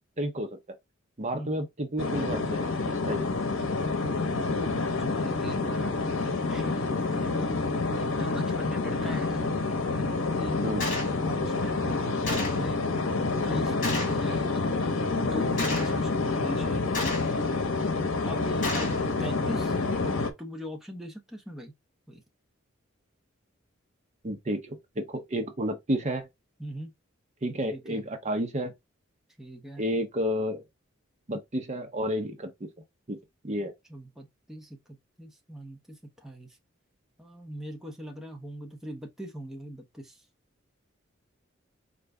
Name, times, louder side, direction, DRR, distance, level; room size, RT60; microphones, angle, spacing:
voice 1, 0.2-0.6 1.2-3.3 10.6-10.9 24.2-26.3 27.4-28.7 29.8-30.6 31.3-32.7 33.1-33.2 33.4-33.7, equal, 35° right, 0.7 m, -31 dB
sound 1, 2.0-20.3, left 3 dB, 75° left, 0.8 m, -28 dB
voice 2, 4.4-9.5 10.0-10.6 11.0-13.0 13.3-17.9 18.3-19.8 20.4-21.7 22.1-22.2 26.6-26.9 27.7-28.0 29.4-29.8 33.9-34.8 35.2-36.6 37.2-40.2, equal, ahead, 0.7 m, -41 dB
Gunshot gunfire, 10.8-11.1 12.3-12.7 13.8-14.2 15.6-16.0 16.9-17.4 18.6-19.0, left 2 dB, 40° left, 1.8 m, -31 dB
4.4 x 2.5 x 3.3 m
head